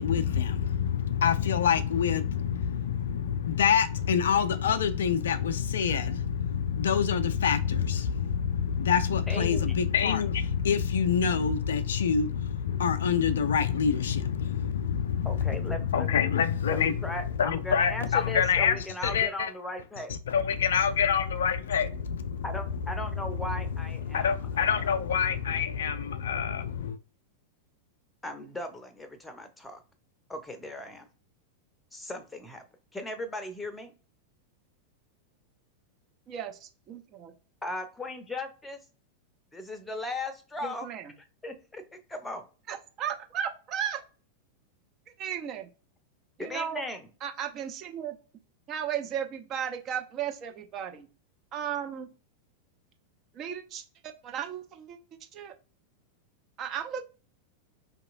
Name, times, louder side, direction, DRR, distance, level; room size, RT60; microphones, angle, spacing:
voice 1, 0.0-19.5 20.1-22.5 23.0-27.0, left 7 dB, 65° left, 0.3 m, -26 dB
voice 2, 9.3-9.7 15.2-16.2 16.7-20.1 22.4-24.8 28.2-29.8 30.3-31.1 31.9-32.6 32.9-33.9 37.6-38.8 39.5-40.9 41.4-42.4 46.4-47.1, left 1 dB, 10° left, 0.7 m, -37 dB
voice 3, 36.3-37.3 40.6-41.1 42.7-44.0 45.2-45.7 46.4-46.8 47.2-48.2 48.7-51.1 51.5-52.1 53.3-53.8 54.2-55.0 55.3-55.5 56.6-57.1, right 9 dB, 35° right, 0.5 m, -35 dB
4.6 x 2.8 x 2.5 m
figure-of-eight pair, 90°, 0 cm